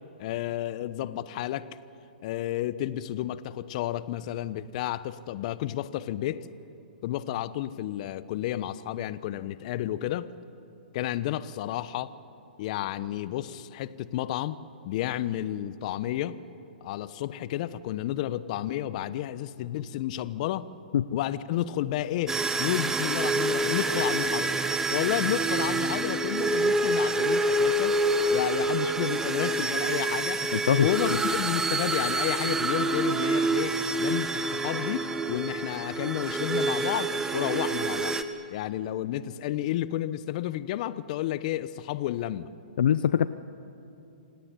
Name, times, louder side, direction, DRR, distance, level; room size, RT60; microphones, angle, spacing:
voice 1, 0.2-1.8 2.2-6.5 7.0-10.3 10.9-12.1 12.6-14.6 14.8-16.4 16.8-20.7 21.1-24.5 24.9-30.5 30.8-38.2 38.5-42.5, left 13 dB, 45° left, 16 dB, 1.0 m, -31 dB
sound 1, 22.3-38.2, right 2 dB, 10° right, 1.2 m, -27 dB
voice 2, 30.5-31.2 42.8-43.3, left 9 dB, 70° left, 14 dB, 0.7 m, -23 dB
26.5 x 17.5 x 9.9 m, 2.8 s
hypercardioid pair, 130°, 5 cm